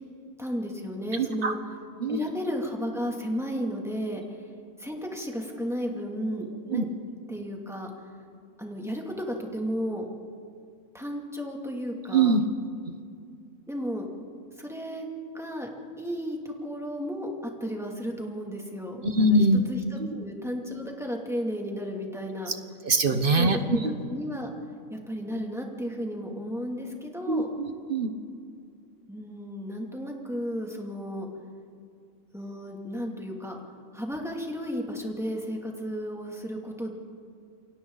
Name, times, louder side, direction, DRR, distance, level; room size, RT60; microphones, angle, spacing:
voice 1, 0.4-1.6 2.1-4.5 4.8-6.9 7.3-7.9 8.6-10.1 10.9-12.4 13.7-14.1 14.6-15.1 15.3-15.7 16.0-17.3 17.6-22.5 23.3-23.8 24.1-24.5 24.9-27.5 29.1-31.3 32.3-33.6 33.9-36.9, equal, ahead, 0 dB, 2.6 m, -33 dB
voice 2, 1.1-1.5 2.0-2.3 6.7-6.8 12.1-12.4 19.0-19.6 20.1-20.2 22.8-23.9 27.3-28.1, right 2 dB, 45° right, 8 dB, 1.2 m, -23 dB
29.0 x 24.0 x 4.0 m, 2.3 s
omnidirectional pair, 1.4 m